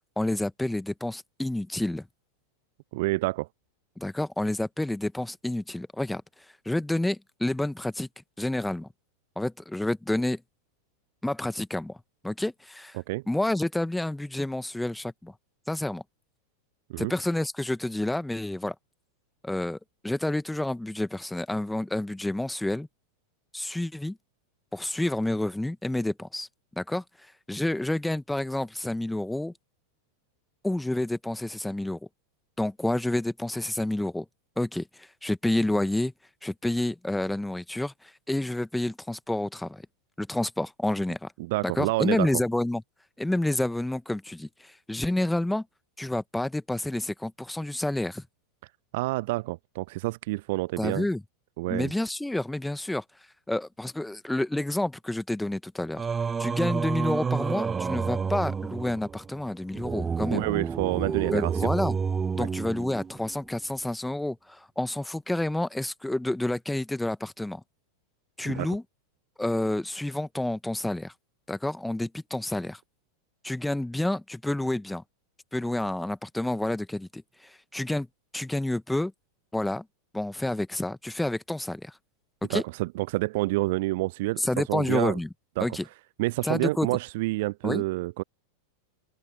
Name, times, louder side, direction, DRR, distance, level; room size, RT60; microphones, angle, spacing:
voice 1, 0.2-2.1 4.0-6.2 6.6-8.1 8.4-8.9 9.3-10.4 11.2-12.0 12.2-13.0 13.3-15.3 15.7-16.0 17.0-18.7 19.4-19.8 20.0-22.9 23.5-24.2 24.7-26.5 26.8-27.0 27.5-29.5 30.6-32.0 32.6-34.2 34.6-36.1 36.4-39.8 40.2-41.3 41.6-42.8 43.2-45.6 46.0-48.2 50.8-51.2 51.7-53.0 53.5-56.0 56.4-60.5 61.3-61.9 62.3-67.6 68.4-68.8 69.4-71.1 71.5-72.8 73.4-75.0 75.5-78.1 78.3-79.1 79.5-79.8 80.1-81.9 82.4-82.6 84.4-85.3 85.6-85.8 86.4-86.9 87.6-87.8, left 1 dB, 5° left, 1.7 m, -29 dB
voice 2, 2.9-3.5 12.9-13.2 16.9-17.1 41.4-42.3 48.9-51.0 51.6-51.9 60.3-61.5 62.4-62.5 68.5-68.7 82.5-84.4 84.7-85.2 85.6-85.7 86.2-88.2, right 21 dB, 50° right, 0.4 m, -28 dB
Singing, 56.0-63.3, right 6 dB, 15° right, 0.7 m, -30 dB
open air
figure-of-eight pair, 90°, 0 cm